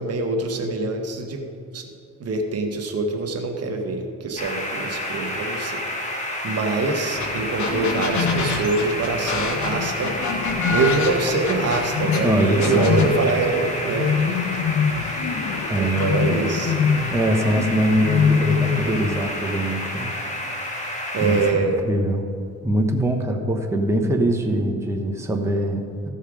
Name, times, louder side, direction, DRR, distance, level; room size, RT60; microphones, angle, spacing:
voice 1, 0.0-1.4 1.7-1.9 2.2-10.2 10.7-14.1 15.7-16.8 21.1-21.8, right 3 dB, 55° right, 3 dB, 1.3 m, -24 dB
sound 1, 4.4-21.5, left 1 dB, 25° left, 1.9 m, -30 dB
sound 2, 7.2-7.3 7.6-12.2 12.6-13.1, left 4 dB, 70° left, 1.4 m, -28 dB
Bird, 7.2-19.3, left 6 dB, 55° left, 0.6 m, -26 dB
voice 2, 12.2-13.0 15.7-16.1 17.1-20.3 21.2-22.3 22.6-26.1, right 1 dB, 10° right, 1 dB, 1.0 m, -23 dB
15.0 x 5.6 x 5.0 m, 2.4 s
cardioid pair, 90°, 30 cm